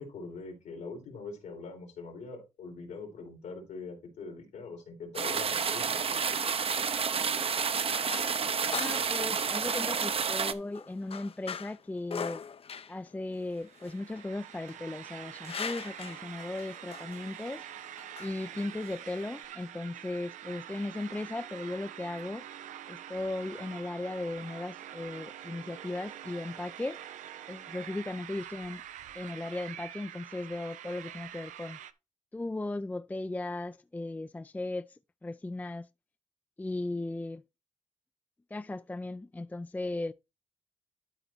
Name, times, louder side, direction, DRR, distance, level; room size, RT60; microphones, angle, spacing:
voice 1, 0.0-6.2, left 4 dB, 90° left, 3.3 m, -43 dB
sound 1, 5.2-10.5, right 6 dB, 50° right, 0.8 m, -30 dB
sound 2, 7.1-19.5, left 6 dB, 50° left, 0.6 m, -43 dB
voice 2, 8.7-12.4 12.9-17.6 18.2-22.4 22.9-27.0 27.5-28.8 29.1-31.8 32.3-35.9 36.6-37.4 38.5-40.1, left 2 dB, 15° left, 0.4 m, -37 dB
sound 3, 13.4-31.9, right 11 dB, 85° right, 0.6 m, -46 dB
12.0 x 4.1 x 4.3 m
cardioid pair, 65°, 13 cm